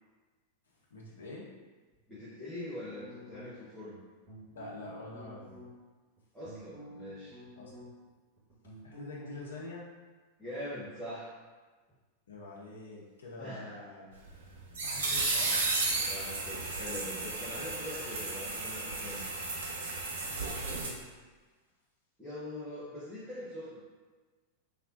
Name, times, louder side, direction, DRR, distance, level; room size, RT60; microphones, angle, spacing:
voice 1, 0.9-1.5 4.5-5.5 7.6-7.7 8.6-9.9 12.3-14.1 14.8-15.8 20.3-21.0, left 2 dB, 65° left, -4 dB, 0.7 m, -46 dB
voice 2, 2.1-4.0 6.3-7.4 10.4-11.3 13.4-13.8 16.1-19.3 22.2-23.8, left 1 dB, 5° right, -13 dB, 0.8 m, -42 dB
sound 1, 2.9-3.8 4.2-5.7 6.2-8.1 8.4-9.4, equal, 30° right, 1.2 m, -50 dB
sound 2, 14.2-20.9, right 3 dB, 65° right, 0.4 m, -33 dB
3.3 x 2.2 x 2.6 m, 1.3 s
figure-of-eight pair, 90°, 0 cm